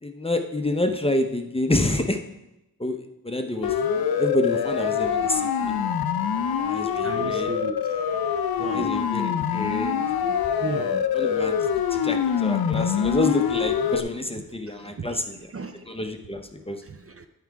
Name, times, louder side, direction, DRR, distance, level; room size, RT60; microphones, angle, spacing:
voice 1, 0.0-2.2 2.8-5.8 6.6-7.5 8.6-10.0 10.7-11.5 11.9-15.5 15.9-16.8, left 1 dB, 15° left, 5 dB, 0.6 m, -28 dB
Siren, 3.6-14.0, left 8 dB, 70° left, 0.6 m, -25 dB
voice 2, 7.0-7.9 8.6-8.9 9.6-9.7 10.2-10.3 10.6-11.0 14.8-15.2 15.5-15.8 16.8-17.3, right 4 dB, 35° right, 7 dB, 0.5 m, -35 dB
10.5 x 4.8 x 4.6 m, 0.91 s
wide cardioid pair, 125°, 38 cm